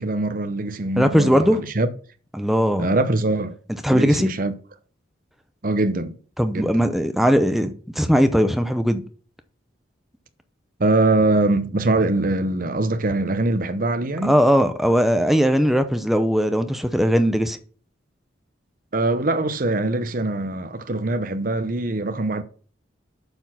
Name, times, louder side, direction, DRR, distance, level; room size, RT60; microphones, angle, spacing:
voice 1, 0.0-1.9 2.8-3.6 3.9-4.5 5.6-6.2 6.5-6.9 10.8-14.3 18.9-22.4, right 2 dB, 45° right, 0.8 m, -23 dB
voice 2, 1.0-1.6 2.3-2.9 3.8-4.3 6.4-9.0 14.2-17.6, equal, ahead, 0.7 m, -19 dB
6.9 x 6.2 x 5.8 m
head